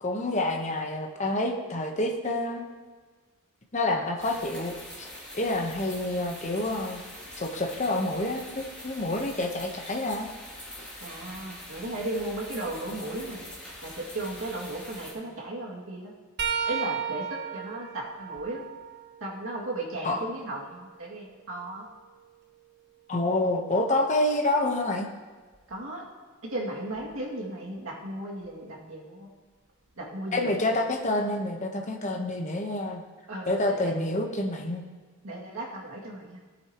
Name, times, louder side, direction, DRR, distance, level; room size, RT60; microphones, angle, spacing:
voice 1, 0.0-2.6 3.7-4.7 5.3-7.0 7.4-10.3 20.0-20.3 23.1-25.1 30.3-33.0 33.5-34.8, left 1 dB, 30° left, 2 dB, 1.0 m, -28 dB
sound 1, 4.2-15.1, left 1 dB, 5° left, 3.0 m, -44 dB
voice 2, 11.0-13.4 13.8-16.1 16.7-18.6 19.2-21.8 25.7-26.0 26.5-29.3 30.0-30.6 33.3-33.9 35.2-36.4, right 1 dB, 65° right, -4 dB, 2.3 m, -35 dB
sound 2, 16.4-20.1 20.7-22.6 25.5-25.7 26.9-27.1 28.4-28.5, right 7 dB, 50° right, 0.9 m, -36 dB
17.5 x 8.4 x 3.0 m, 1.4 s
head